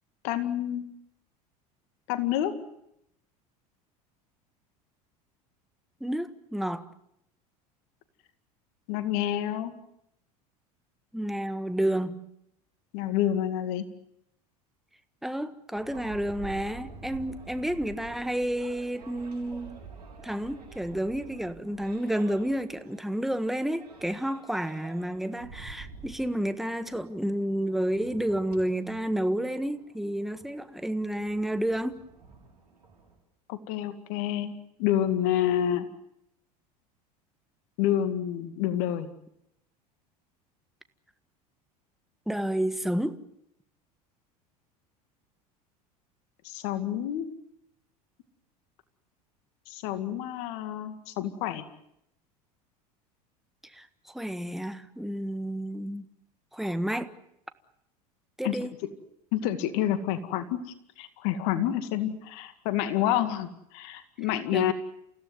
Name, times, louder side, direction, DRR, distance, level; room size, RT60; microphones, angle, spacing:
voice 1, 0.2-0.8 2.1-2.5 8.9-9.7 12.9-13.8 33.5-34.5 34.8-35.9 37.8-39.1 46.4-47.3 49.7-51.6 58.4-58.6 59.3-60.6 61.0-64.7, left 11 dB, 65° left, 2.2 m, -28 dB
voice 2, 6.0-6.9 11.1-12.3 15.2-19.8 20.2-32.0 42.3-43.2 53.6-56.1 56.5-57.1 58.4-58.8 64.5-64.7, right 1 dB, ahead, 1.6 m, -30 dB
sound 1, 15.7-33.1, right 4 dB, 90° right, 6.4 m, -49 dB
29.0 x 16.5 x 9.5 m
hypercardioid pair, 80°, 20 cm